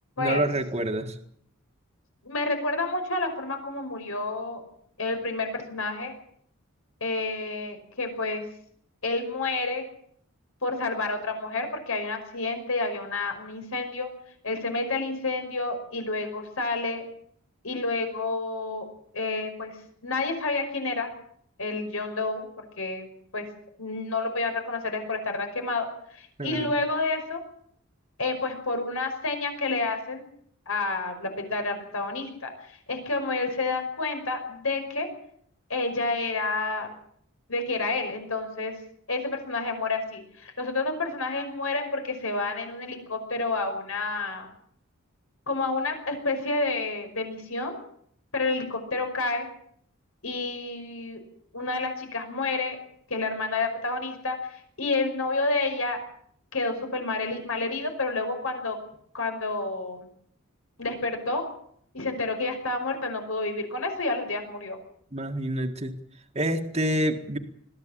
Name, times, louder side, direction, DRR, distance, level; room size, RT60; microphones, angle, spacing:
voice 1, 0.2-1.1 26.4-26.7 65.1-65.9 66.4-67.4, right 1 dB, 30° right, 4 dB, 1.8 m, -27 dB
voice 2, 2.2-4.6 5.0-6.1 7.0-8.4 9.0-9.8 10.6-14.1 14.4-17.0 17.6-18.9 19.1-19.8 20.0-21.1 21.6-23.0 23.3-23.5 23.8-27.4 28.2-30.3 30.7-35.1 35.7-36.9 37.5-38.7 39.1-44.5 45.5-47.8 48.3-49.5 50.2-51.2 51.5-52.8 53.1-56.0 56.5-58.8 59.1-60.1 60.8-61.4 61.9-64.8, left 3 dB, 75° left, 5 dB, 5.4 m, -29 dB
22.0 x 15.0 x 8.6 m, 0.66 s
head